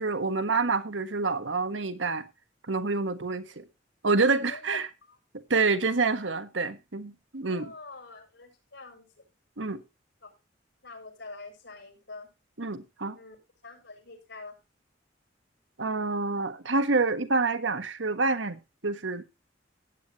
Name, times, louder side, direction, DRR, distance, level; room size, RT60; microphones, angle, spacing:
voice 1, 0.0-2.2 2.7-3.6 4.0-4.9 5.5-7.7 9.6-9.8 12.6-13.2 15.8-19.2, right 3 dB, 85° right, 1.4 m, -27 dB
voice 2, 7.5-9.3 10.2-10.3 10.8-12.3 13.1-13.4 13.6-14.6, left 3 dB, 75° left, 6.4 m, -46 dB
16.5 x 9.4 x 3.0 m
head